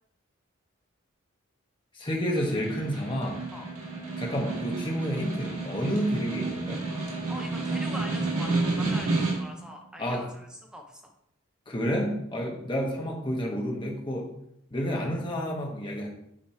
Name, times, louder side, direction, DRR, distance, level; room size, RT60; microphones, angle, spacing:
voice 1, 1.9-3.4 4.2-6.8 10.0-10.3 11.7-14.3 14.7-16.1, equal, 20° left, -1 dB, 1.2 m, -30 dB
Snare drum, 2.2-9.7, right 3 dB, 90° right, 1.9 m, -31 dB
voice 2, 7.3-11.1 12.3-12.5, equal, 5° right, 2 dB, 0.6 m, -43 dB
8.7 x 3.2 x 4.3 m, 0.76 s
head